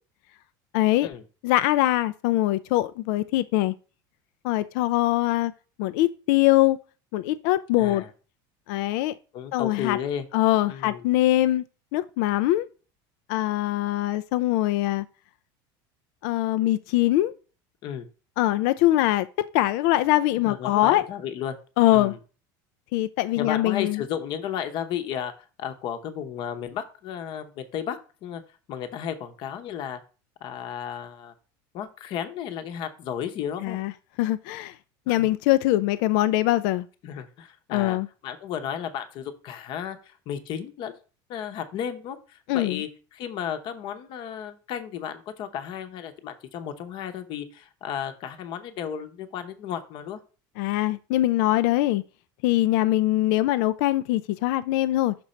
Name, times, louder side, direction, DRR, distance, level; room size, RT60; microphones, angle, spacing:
voice 1, 0.7-1.1 1.4-3.7 4.4-5.5 5.8-6.8 7.1-8.0 8.7-9.2 9.5-10.0 10.3-11.6 11.9-12.7 13.3-15.1 16.2-17.3 18.4-21.0 21.8-22.1 22.9-24.0 33.6-33.9 34.2-34.8 35.1-36.9 37.7-38.1 42.5-42.8 50.6-52.0 52.4-55.2, left 15 dB, 70° left, 0.4 m, -22 dB
voice 2, 7.8-8.1 9.3-10.2 10.7-11.0 17.8-18.1 20.5-21.6 21.9-22.2 23.4-25.3 25.6-28.4 28.7-30.0 30.4-31.3 31.7-33.8 35.1-35.3 37.0-38.0 38.2-41.0 41.3-50.2, left 9 dB, 50° left, 0.9 m, -33 dB
6.1 x 5.2 x 4.3 m
cardioid pair, 145°, 11 cm